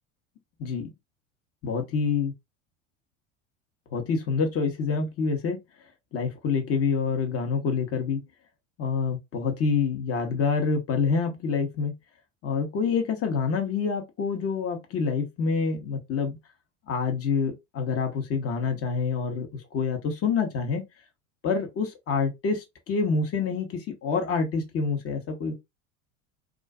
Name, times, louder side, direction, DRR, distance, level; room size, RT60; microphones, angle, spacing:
voice 1, 1.6-2.3 3.9-5.6 6.1-8.2 8.8-11.9 12.4-16.4 16.9-20.8 21.4-25.5, left 5 dB, 35° left, 1.0 m, -27 dB
2.4 x 2.4 x 2.4 m
hypercardioid pair, 80°, 38 cm